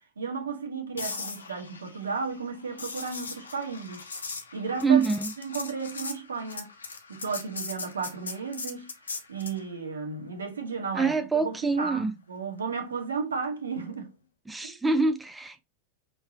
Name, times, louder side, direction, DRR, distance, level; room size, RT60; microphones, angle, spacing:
voice 1, 0.2-4.1 4.5-5.0 5.4-6.7 7.1-8.9 9.3-11.1 11.4-14.1 14.6-14.7, right 5 dB, 70° right, 1.3 m, -33 dB
sound 1, 1.0-9.6 13.8-14.0, left 4 dB, 75° left, 1.0 m, -39 dB
voice 2, 4.8-5.3 11.0-12.1 14.5-15.6, right 4 dB, 10° right, 0.5 m, -25 dB
5.7 x 3.3 x 2.8 m
figure-of-eight pair, 90°, 0 cm